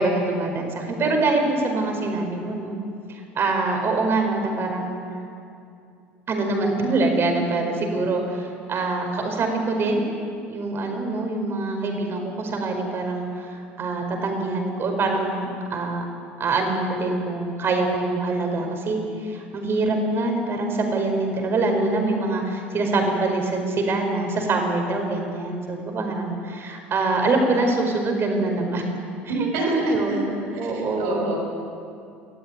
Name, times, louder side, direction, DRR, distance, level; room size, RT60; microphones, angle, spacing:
voice 1, 0.0-2.8 3.1-5.0 6.3-10.0 10.4-16.0 16.4-28.8 29.2-30.3 30.6-31.3, right 2 dB, 40° right, 3 dB, 5.0 m, -24 dB
voice 2, 29.3-30.2 30.5-30.6 31.0-31.4, right 3 dB, 75° right, -4 dB, 6.5 m, -26 dB
20.5 x 13.5 x 9.4 m, 2.5 s
hypercardioid pair, 70°, 6 cm